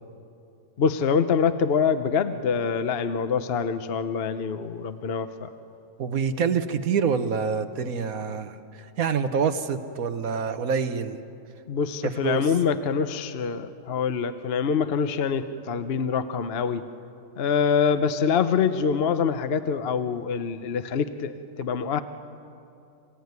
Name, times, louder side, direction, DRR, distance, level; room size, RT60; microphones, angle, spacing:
voice 1, 0.8-5.5 11.7-16.8 17.4-22.0, left 6 dB, 50° left, 10 dB, 0.9 m, -25 dB
voice 2, 6.0-8.6 9.0-11.2 12.0-12.5, right 6 dB, 80° right, 10 dB, 1.5 m, -26 dB
27.5 x 16.5 x 9.5 m, 2.6 s
omnidirectional pair, 1.5 m